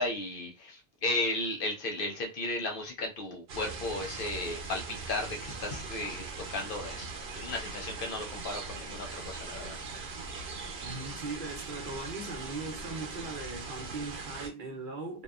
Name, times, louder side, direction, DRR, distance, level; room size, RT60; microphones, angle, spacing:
voice 1, 0.0-9.8, left 2 dB, 65° left, 0.8 m, -35 dB
sound 1, 3.5-14.5, right 4 dB, 90° right, 1.0 m, -40 dB
voice 2, 10.8-15.2, right 3 dB, 60° right, 0.8 m, -39 dB
2.7 x 2.2 x 2.3 m
omnidirectional pair, 1.0 m